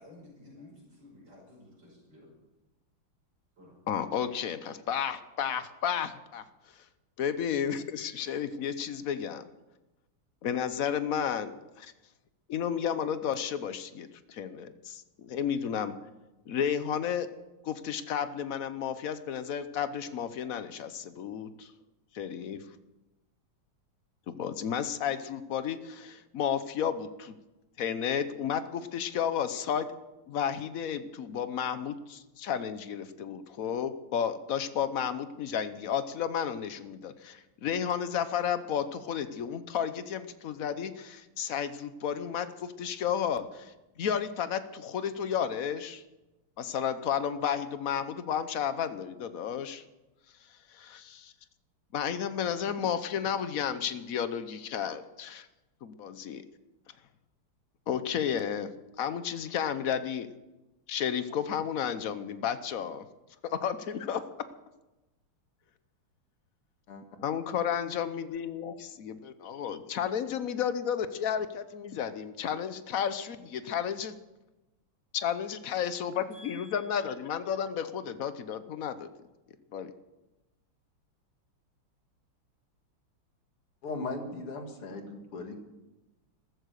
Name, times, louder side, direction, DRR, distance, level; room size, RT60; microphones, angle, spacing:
voice 1, 0.0-2.3 3.6-3.8 76.3-77.1, left 1 dB, 55° right, -4 dB, 6.5 m, -53 dB
voice 2, 3.9-6.4 7.2-9.5 10.4-11.9 12.5-15.9 16.5-17.3 17.6-21.7 22.1-22.6 24.3-27.3 27.8-29.9 30.3-46.0 46.6-49.8 50.7-51.3 51.9-55.5 55.8-56.4 57.9-58.7 59.0-60.3 60.9-63.0 63.4-64.2 67.2-74.2 75.1-75.5 75.7-79.1 79.7-79.9, left 8 dB, 60° left, 12 dB, 0.9 m, -32 dB
voice 3, 83.8-85.6, left 3 dB, 90° left, 4 dB, 2.9 m, -38 dB
14.5 x 14.0 x 6.5 m, 1.0 s
omnidirectional pair, 2.4 m